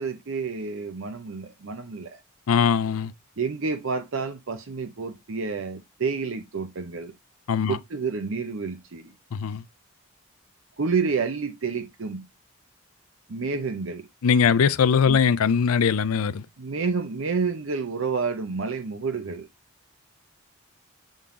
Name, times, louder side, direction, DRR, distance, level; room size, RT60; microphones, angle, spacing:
voice 1, 0.0-2.2 3.4-7.1 7.7-9.1 10.8-12.2 13.3-14.1 15.1-15.2 16.6-19.5, right 4 dB, 65° right, 0.6 m, -29 dB
voice 2, 2.5-3.1 7.5-7.8 9.3-9.6 14.2-16.4, left 6 dB, 85° left, 0.5 m, -21 dB
7.1 x 3.8 x 3.7 m
head